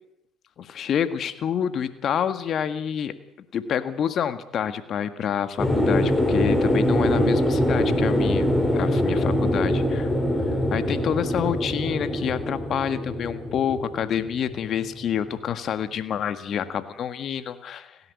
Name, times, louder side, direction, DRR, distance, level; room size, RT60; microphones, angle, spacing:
voice 1, 0.6-3.1 3.5-8.5 8.7-10.1 10.7-18.0, left 8 dB, 55° left, 11 dB, 1.7 m, -28 dB
sound 1, 5.6-15.3, left 1 dB, 15° left, 5.0 m, -23 dB
30.0 x 11.0 x 8.4 m, 0.84 s
hypercardioid pair, 60°, 0 cm